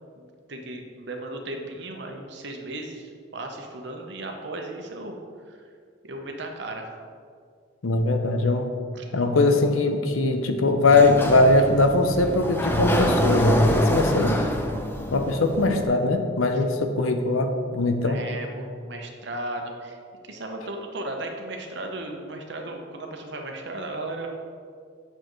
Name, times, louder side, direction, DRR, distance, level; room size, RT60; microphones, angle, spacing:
voice 1, 0.5-5.2 5.5-5.6 6.0-7.0 8.9-9.2 16.5-16.6 18.0-20.0 20.2-24.3, right 2 dB, 55° right, 2 dB, 0.9 m, -35 dB
voice 2, 7.8-8.7 9.1-14.4 15.1-18.2, left 2 dB, 80° left, 6 dB, 0.7 m, -21 dB
Sliding door, 10.9-15.9, equal, 10° left, 0.4 m, -25 dB
8.8 x 6.6 x 3.1 m, 2.1 s
head